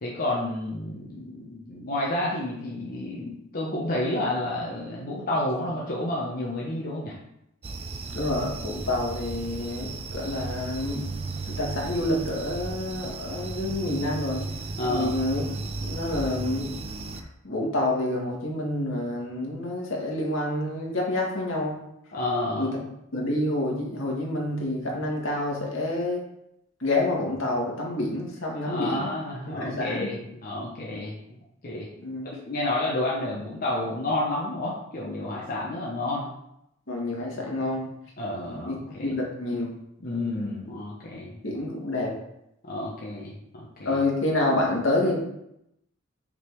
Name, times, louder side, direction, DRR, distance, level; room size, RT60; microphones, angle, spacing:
voice 1, 0.0-7.1 14.8-15.2 22.1-22.7 28.5-31.2 31.6-31.9 32.3-36.3 38.2-39.2 40.0-41.4 42.7-44.0, left 1 dB, 45° left, -4 dB, 1.0 m, -30 dB
sound 1, 7.6-17.2, right 3 dB, 30° right, 0.4 m, -35 dB
voice 2, 8.1-11.1 11.5-14.5 14.8-16.7 17.1-21.8 22.6-22.8 23.1-26.2 26.8-29.1 29.4-30.1 32.0-32.3 36.9-37.9 38.5-39.8 41.4-42.1 43.9-45.2, left 1 dB, 75° left, -2 dB, 1.9 m, -28 dB
6.1 x 4.0 x 4.6 m, 0.80 s
head